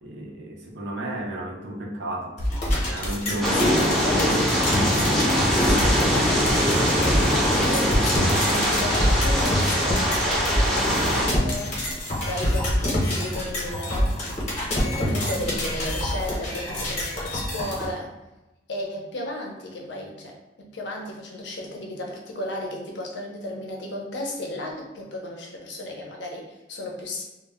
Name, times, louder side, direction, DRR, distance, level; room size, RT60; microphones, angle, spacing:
voice 1, 0.0-2.4 2.8-3.8 15.0-15.3, right 1 dB, 70° right, -1 dB, 0.5 m, -33 dB
sound 1, 2.4-17.9, left 1 dB, 40° left, 0.7 m, -26 dB
voice 2, 3.4-4.7 5.2-11.9 12.2-14.1 14.7-18.1 18.7-27.2, left 1 dB, 75° left, 0 dB, 0.6 m, -34 dB
sound 2, 3.4-11.3, equal, ahead, 0.4 m, -22 dB
2.1 x 2.0 x 3.4 m, 1.0 s
head